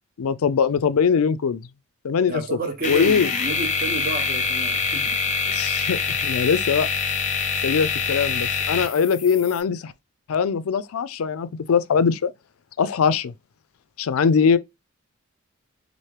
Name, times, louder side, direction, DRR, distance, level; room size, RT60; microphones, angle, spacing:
voice 1, 0.2-1.6 2.0-2.6 2.9-3.3 5.5-6.9 7.6-9.9 10.3-12.3 12.8-13.3 14.0-14.6, left 6 dB, 85° left, 0.4 m, -21 dB
voice 2, 2.3-5.3, right 3 dB, 40° right, 0.9 m, -31 dB
sound 1, 2.8-9.6, left 5 dB, 35° left, 0.6 m, -25 dB
4.4 x 2.6 x 3.2 m
head